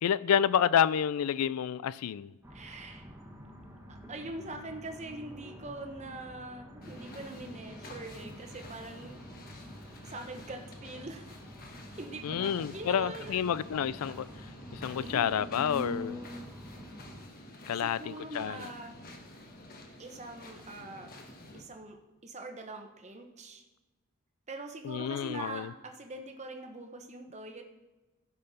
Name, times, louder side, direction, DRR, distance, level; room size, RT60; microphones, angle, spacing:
voice 1, 0.0-2.3 12.2-14.3 14.7-16.2 17.7-18.7 24.8-25.7, left 8 dB, 85° left, 0.4 m, -29 dB
sound 1, 2.4-17.3, equal, 10° right, 1.3 m, -47 dB
voice 2, 2.5-3.0 3.9-9.2 9.8-11.4 11.9-13.4 15.0-15.4 17.7-19.0 20.0-21.1 21.5-22.0 22.2-23.6 24.5-27.6, right 2 dB, 30° right, 1.0 m, -43 dB
sound 2, 6.8-21.6, left 1 dB, 45° left, 1.3 m, -49 dB
15.5 x 5.6 x 4.2 m
head